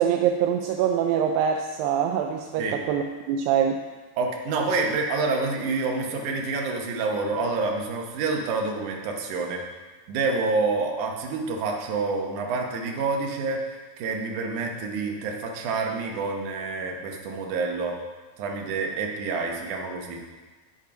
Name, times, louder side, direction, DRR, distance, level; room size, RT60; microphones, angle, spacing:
voice 1, 0.0-3.8, right 8 dB, 85° right, 4 dB, 2.1 m, -24 dB
voice 2, 4.2-9.6 10.1-18.0 18.4-20.2, right 3 dB, 65° right, 1 dB, 2.1 m, -28 dB
8.1 x 7.1 x 5.2 m, 1.3 s
omnidirectional pair, 4.5 m